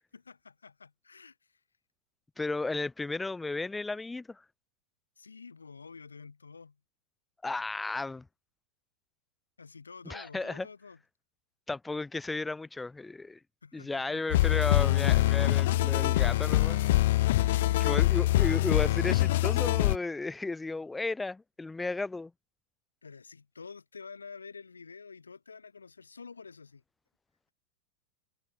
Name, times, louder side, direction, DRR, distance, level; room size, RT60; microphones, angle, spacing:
voice 1, 0.1-1.4 5.2-6.8 9.6-11.0 13.6-14.4 17.5-18.1 23.0-26.8, left 5 dB, 75° left, 6.5 m, -48 dB
voice 2, 2.4-4.4 7.4-8.3 10.0-10.7 11.7-13.4 13.7-16.8 17.8-22.3, left 3 dB, 10° left, 0.9 m, -34 dB
sound 1, 14.3-20.0, left 16 dB, 55° left, 0.4 m, -24 dB
figure-of-eight pair, 90°, 0 cm